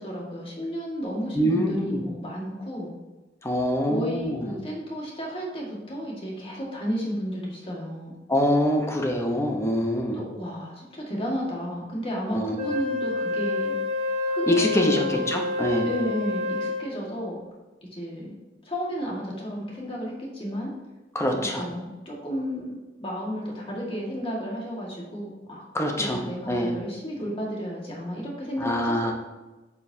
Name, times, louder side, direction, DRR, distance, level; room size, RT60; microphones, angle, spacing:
voice 1, 0.0-2.9 3.8-8.1 10.1-13.7 14.3-15.2 15.9-17.4 17.9-18.4 18.6-20.7 21.3-25.7 26.0-29.1, equal, 30° left, -3 dB, 1.8 m, -33 dB
voice 2, 1.3-2.0 3.4-4.4 8.3-10.2 12.3-12.7 14.5-15.9 21.1-21.6 25.7-26.2 26.5-26.7 28.6-29.1, equal, 15° left, 1 dB, 0.9 m, -24 dB
Wind instrument woodwind instrument, 12.6-16.9, left 3 dB, 40° right, 1.7 m, -28 dB
9.2 x 5.5 x 2.8 m, 1.1 s
head